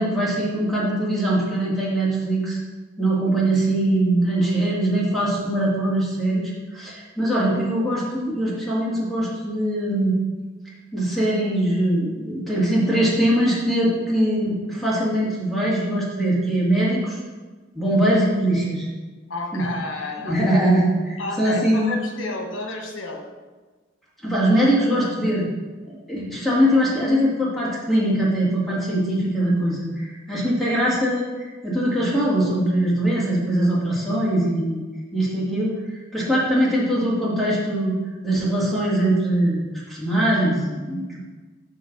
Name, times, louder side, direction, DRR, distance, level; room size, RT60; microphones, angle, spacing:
voice 1, 0.0-2.6 3.0-10.1 10.9-17.1 17.7-18.9 19.5-19.6 20.2-21.9 24.2-25.5 25.9-34.8 35.1-38.0 38.2-41.2, right 1 dB, ahead, -7 dB, 2.0 m, -22 dB
voice 2, 19.3-20.6 21.2-23.2, left 2 dB, 90° left, 2 dB, 1.2 m, -31 dB
7.5 x 3.2 x 6.0 m, 1.3 s
head